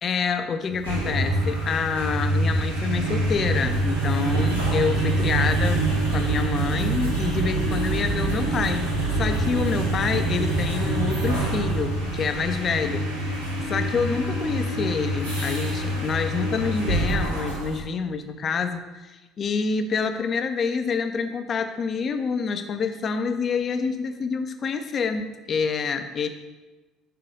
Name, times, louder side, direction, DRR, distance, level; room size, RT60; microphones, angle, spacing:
voice 1, 0.0-5.8 6.1-13.1 13.6-26.3, left 5 dB, 40° left, 8 dB, 0.5 m, -27 dB
sound 1, 0.7-17.8, right 2 dB, 85° right, 1.0 m, -25 dB
5.6 x 3.7 x 5.1 m, 1.2 s
figure-of-eight pair, 55°, 0 cm